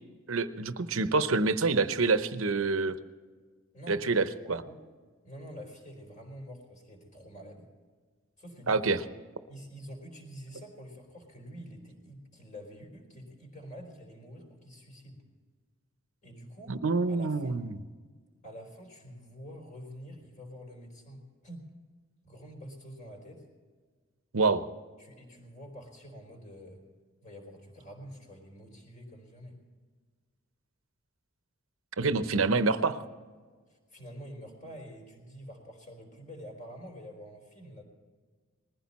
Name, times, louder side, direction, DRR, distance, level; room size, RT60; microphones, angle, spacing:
voice 1, 0.3-3.0 3.9-4.6 8.7-9.0 16.7-17.8 24.3-24.7 32.0-33.0, right 3 dB, 80° right, 12 dB, 0.9 m, -27 dB
voice 2, 4.4-4.8 5.2-7.7 8.4-9.0 9.5-15.2 16.2-16.8 17.1-17.5 18.4-21.7 22.2-23.4 25.0-26.8 27.2-29.6 32.3-32.4 33.7-37.8, equal, 40° left, 1 dB, 4.4 m, -47 dB
20.5 x 15.0 x 4.2 m, 1.5 s
head